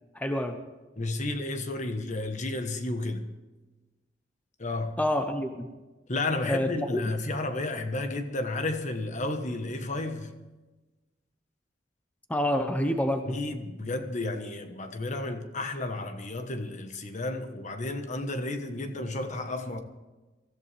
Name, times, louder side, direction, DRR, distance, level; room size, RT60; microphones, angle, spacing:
voice 1, 0.1-0.6 5.0-5.7 6.4-7.0 12.3-13.2, left 1 dB, 10° left, 0.9 m, -27 dB
voice 2, 1.0-3.3 4.6-5.0 6.1-10.4 13.3-19.8, left 2 dB, 40° left, 1.3 m, -32 dB
23.5 x 14.0 x 3.5 m
head